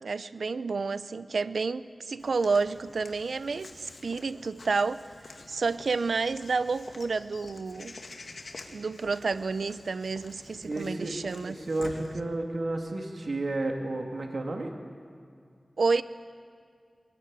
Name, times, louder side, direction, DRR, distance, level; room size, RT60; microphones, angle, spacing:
voice 1, 0.0-5.0 5.5-8.0 8.7-11.6 15.8-16.0, right 4 dB, 90° right, 14 dB, 0.6 m, -30 dB
Walk footsteps / Bird vocalization bird call bird song, 2.2-12.1, left 3 dB, 75° left, 2.2 m, -48 dB
voice 2, 10.6-11.2 11.4-14.7, right 2 dB, 70° right, 2 dB, 2.2 m, -32 dB
22.0 x 19.0 x 9.3 m, 2.3 s
wide cardioid pair, 55°, 0 cm